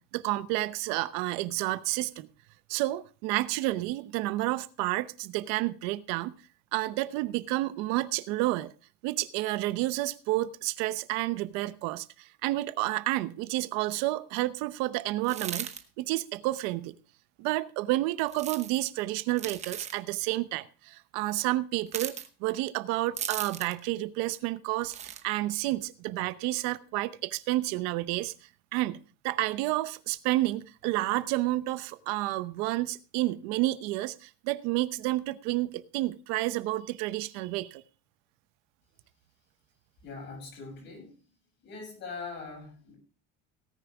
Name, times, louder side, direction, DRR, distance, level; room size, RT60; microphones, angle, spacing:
voice 1, 0.0-2.3 2.7-6.3 6.7-8.7 9.0-15.7 16.0-16.9 17.4-22.1 22.4-24.9 25.2-28.3 28.7-37.8, right 17 dB, 70° right, 0.9 m, -30 dB
sound 1, 15.2-15.8 18.3-18.8 19.4-20.0 21.9-22.3 23.2-23.8 24.8-25.2, right 8 dB, 25° right, 1.0 m, -37 dB
voice 2, 40.0-41.2 41.6-42.9, left 4 dB, 40° left, 7.6 m, -42 dB
18.0 x 9.7 x 3.5 m
cardioid pair, 180°, 29 cm